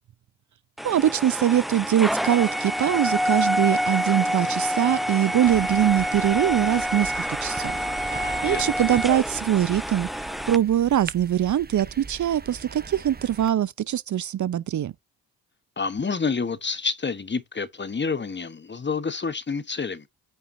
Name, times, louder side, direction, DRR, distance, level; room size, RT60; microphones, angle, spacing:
sound 1, 0.8-10.6, equal, ahead, 0.4 m, -27 dB
voice 1, 0.8-7.7 8.0-8.2 8.4-10.1 10.5-14.9, right 11 dB, 50° right, 0.7 m, -22 dB
sound 2, 1.0-7.3, right 10 dB, 80° right, 4.7 m, -48 dB
sound 3, 5.4-13.5, right 5 dB, 25° right, 0.9 m, -40 dB
voice 2, 15.8-20.1, left 5 dB, 25° left, 1.2 m, -28 dB
9.2 x 5.7 x 2.7 m
hypercardioid pair, 50°, 40 cm